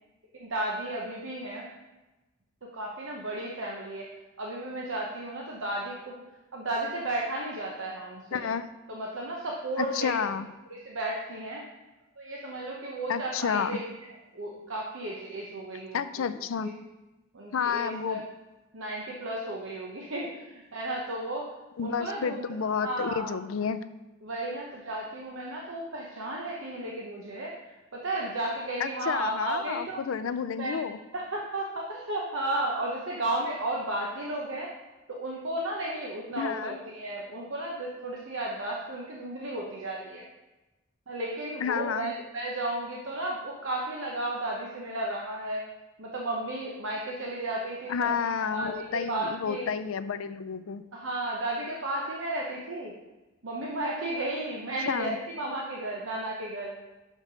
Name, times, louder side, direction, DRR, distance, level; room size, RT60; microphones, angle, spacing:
voice 1, 0.3-1.7 2.7-4.1 4.4-6.2 6.5-8.4 8.9-10.1 10.7-11.6 12.2-14.0 14.3-16.2 16.6-16.7 17.3-18.2 18.7-21.5 21.8-22.5 22.8-23.3 24.2-27.5 27.9-30.0 30.6-30.8 31.1-34.7 35.1-40.2 41.1-45.6 46.0-49.7 50.9-52.9 53.4-56.8, right 1 dB, 75° right, -2 dB, 0.9 m, -33 dB
voice 2, 8.3-8.7 9.8-10.5 13.1-13.8 15.9-16.7 17.5-18.3 21.8-23.8 28.8-31.0 36.4-36.8 41.6-42.1 47.9-50.8 54.9-55.2, left 6 dB, 90° left, 13 dB, 0.4 m, -30 dB
6.6 x 5.3 x 5.0 m, 1.1 s
head